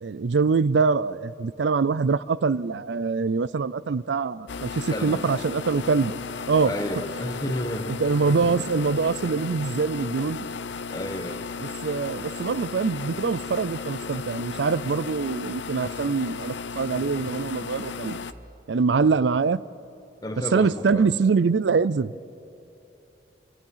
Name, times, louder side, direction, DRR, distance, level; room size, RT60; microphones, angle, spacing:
voice 1, 0.0-6.1 6.5-6.7 7.9-10.5 11.8-18.2 18.7-19.6 20.5-22.1, right 4 dB, 75° right, 19 dB, 0.5 m, -24 dB
sound 1, 4.5-18.3, left 5 dB, 80° left, 0.8 m, -35 dB
voice 2, 4.9-5.4 6.6-7.9 10.9-11.6 20.2-21.1, left 1 dB, 20° left, 5 dB, 1.4 m, -32 dB
28.0 x 26.0 x 5.7 m, 2.8 s
head